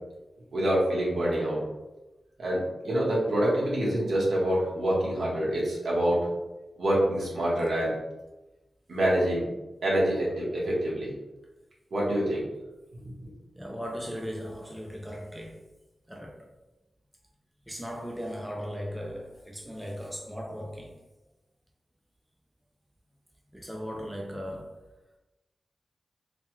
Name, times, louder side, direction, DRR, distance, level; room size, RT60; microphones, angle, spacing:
voice 1, 0.5-1.6 2.4-6.2 6.8-7.9 8.9-9.4 9.8-11.1 11.9-12.4, right 1 dB, 70° right, -6 dB, 1.1 m, -26 dB
voice 2, 13.6-15.6 16.1-16.5 17.7-21.0 23.5-24.7, equal, 5° right, -1 dB, 0.3 m, -37 dB
3.2 x 2.2 x 2.9 m, 1.0 s
wide cardioid pair, 170°, 0 cm